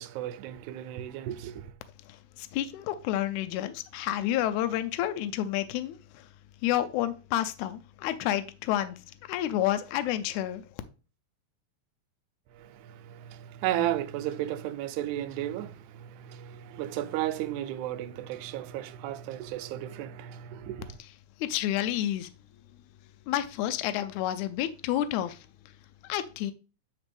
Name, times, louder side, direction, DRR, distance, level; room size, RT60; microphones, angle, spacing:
voice 1, 0.0-1.7 12.5-21.0, right 12 dB, 80° right, 1.9 m, -34 dB
voice 2, 2.0-6.3 6.6-10.6 21.0-21.1 21.4-22.3 23.3-25.7 26.0-26.5, left 12 dB, 80° left, 1.9 m, -30 dB
9.2 x 4.1 x 3.4 m
omnidirectional pair, 3.7 m